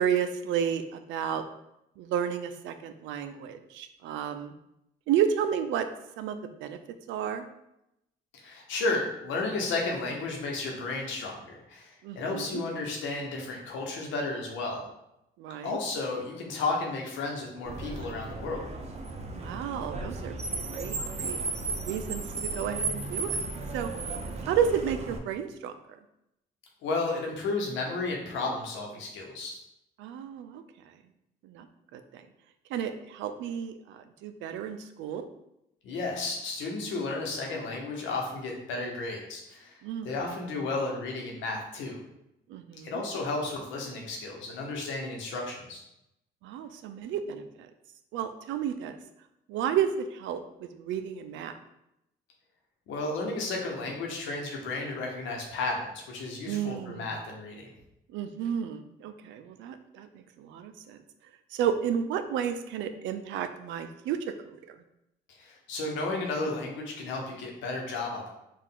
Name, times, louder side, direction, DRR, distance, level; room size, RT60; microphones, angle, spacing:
voice 1, 0.0-1.4 2.0-4.5 5.1-5.9 6.2-6.8 7.1-7.4 12.0-12.6 15.4-15.8 19.4-20.4 20.6-21.4 21.8-23.4 23.7-23.9 24.5-25.7 30.0-30.6 31.4-31.7 31.9-32.2 32.7-35.3 39.8-40.1 42.5-42.9 46.4-47.4 48.1-49.0 49.5-51.5 56.5-57.1 58.1-61.0 61.5-64.8, right 8 dB, 85° right, 9 dB, 0.4 m, -32 dB
voice 2, 8.3-14.8 15.6-18.7 26.8-29.6 35.8-39.8 40.0-42.0 42.8-45.8 52.9-57.7 65.4-68.3, left 3 dB, 85° left, 0 dB, 1.0 m, -33 dB
Car, 17.6-25.2, right 3 dB, 35° right, 0.7 m, -35 dB
4.5 x 2.5 x 3.8 m, 0.84 s
cardioid pair, 75°, 19 cm